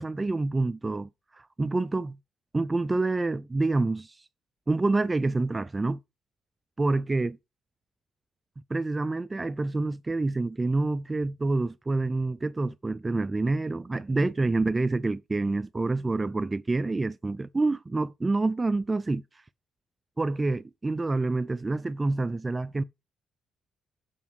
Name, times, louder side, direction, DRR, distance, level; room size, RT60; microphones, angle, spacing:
voice 1, 0.0-2.2 2.5-4.2 4.7-6.0 6.8-7.4 8.7-19.2 20.2-22.8, right 3 dB, 20° right, 0.4 m, -27 dB
7.4 x 5.8 x 5.9 m
cardioid pair, 90°, 0 cm